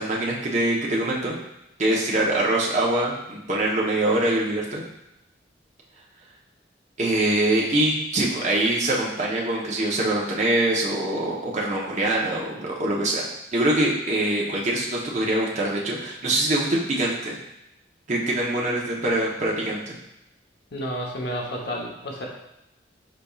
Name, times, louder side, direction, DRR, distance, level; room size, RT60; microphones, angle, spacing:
voice 1, 0.0-1.4 1.8-4.8 7.0-13.2 13.5-17.4 18.1-20.0, right 1 dB, 40° right, -3 dB, 0.8 m, -24 dB
voice 2, 20.7-22.3, equal, 60° left, -1 dB, 0.9 m, -31 dB
5.2 x 4.2 x 2.3 m, 0.87 s
head